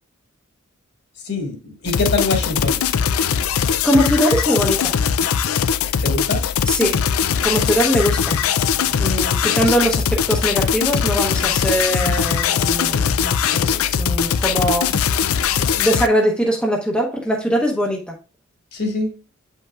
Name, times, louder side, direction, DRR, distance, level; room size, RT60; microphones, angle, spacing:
voice 1, 1.2-2.8 6.0-6.4 18.7-19.1, left 3 dB, 50° left, 1.7 m, -23 dB
sound 1, 1.9-16.1, left 7 dB, 75° left, 0.4 m, -20 dB
voice 2, 3.8-4.9 6.7-7.0 7.4-8.4 9.0-14.9 15.6-18.1, equal, 5° left, 0.8 m, -21 dB
7.9 x 5.5 x 2.4 m
head